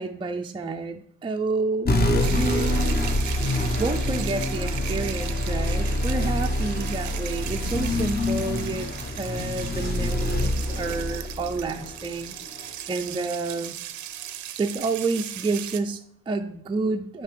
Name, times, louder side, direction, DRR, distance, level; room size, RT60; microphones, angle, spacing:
voice 1, 0.0-2.0 2.3-3.1 3.8-8.9 9.2-13.8 14.6-17.2, right 3 dB, 15° right, 3 dB, 0.4 m, -29 dB
sound 1, 1.8-12.7, left 1 dB, 30° left, 1.0 m, -26 dB
sound 2, 2.2-15.8, right 11 dB, 75° right, 0.6 m, -38 dB
6.5 x 4.5 x 3.3 m, 0.67 s
cardioid pair, 90°, 30 cm